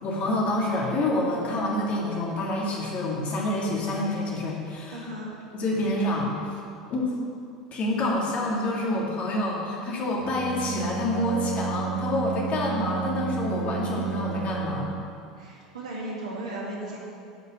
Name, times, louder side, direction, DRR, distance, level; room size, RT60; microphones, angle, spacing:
voice 1, 0.0-5.1 5.5-6.3 6.9-7.1 7.7-14.9, left 1 dB, 45° left, -3 dB, 2.6 m, -27 dB
voice 2, 4.9-5.3 15.4-17.0, right 1 dB, 75° right, -3 dB, 2.1 m, -35 dB
Bowed string instrument, 10.2-15.3, right 6 dB, 25° right, 1.0 m, -32 dB
9.4 x 5.6 x 7.6 m, 2.5 s
figure-of-eight pair, 75°, 3 cm